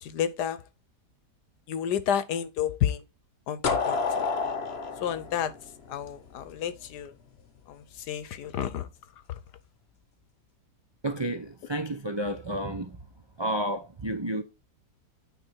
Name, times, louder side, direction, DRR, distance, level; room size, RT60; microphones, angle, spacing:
voice 1, 0.0-0.6 1.7-3.0 3.5-4.3 5.0-5.5 5.9-7.1 7.7-8.9 9.3-9.4, left 9 dB, 80° left, 1.4 m, -30 dB
sound 1, 3.6-6.5, left 4 dB, 45° left, 1.0 m, -29 dB
voice 2, 11.0-13.0 13.4-14.4, right 1 dB, 45° right, 0.3 m, -31 dB
9.3 x 3.4 x 4.5 m
omnidirectional pair, 1.8 m